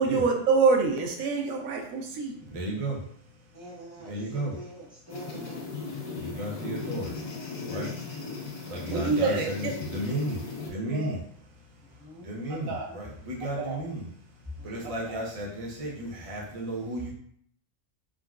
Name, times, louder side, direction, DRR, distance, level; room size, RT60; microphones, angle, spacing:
voice 1, 0.0-2.3 8.9-9.7 10.8-11.2 12.7-12.9 13.6-13.8 15.1-15.2, right 4 dB, 80° right, 2 dB, 1.0 m, -26 dB
voice 2, 2.5-3.0 4.1-4.5 6.2-7.1 7.7-7.9 8.7-10.4 10.7-11.2 12.2-14.0 14.6-17.1, right 1 dB, 40° right, -3 dB, 0.6 m, -33 dB
voice 3, 3.5-5.6 11.8-12.3 12.9-13.0 14.6-14.9, right 1 dB, 15° left, -8 dB, 0.7 m, -46 dB
sound 1, 5.1-10.7, left 4 dB, 70° left, 0.3 m, -37 dB
3.6 x 2.2 x 2.3 m, 0.63 s
omnidirectional pair, 1.4 m